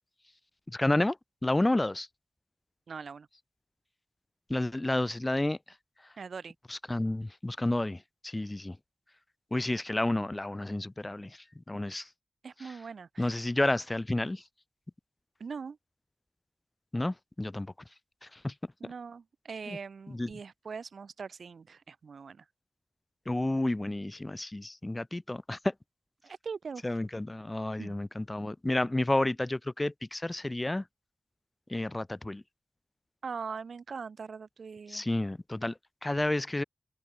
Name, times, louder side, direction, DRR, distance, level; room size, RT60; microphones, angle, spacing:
voice 1, 0.7-1.2 1.4-2.1 4.5-5.6 6.7-8.8 9.5-12.1 12.6-12.8 13.2-14.4 16.9-17.7 18.2-18.5 19.7-19.8 20.1-20.3 23.3-25.7 26.8-30.8 31.7-32.4 34.9-36.6, left 1 dB, 20° left, 2.9 m, -31 dB
voice 2, 2.9-3.3 6.2-6.5 11.9-12.0 12.4-13.4 15.4-15.8 18.8-22.4 26.2-26.8 27.8-27.9 33.2-35.0, right 5 dB, 70° right, 2.4 m, -41 dB
open air
wide cardioid pair, 90°, 0 cm